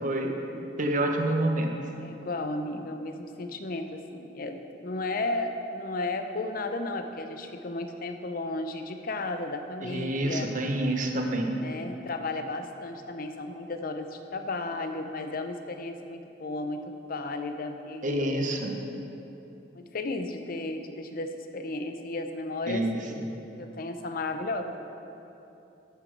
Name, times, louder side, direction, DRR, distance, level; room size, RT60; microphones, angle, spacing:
voice 1, 0.0-1.7 9.8-11.6 18.0-18.8 22.7-23.2, right 1 dB, 45° right, 3 dB, 0.9 m, -28 dB
voice 2, 2.0-10.5 11.6-16.8 17.1-18.5 19.7-23.2 23.6-24.8, left 2 dB, 50° left, 6 dB, 0.6 m, -34 dB
12.5 x 6.1 x 4.6 m, 2.9 s
head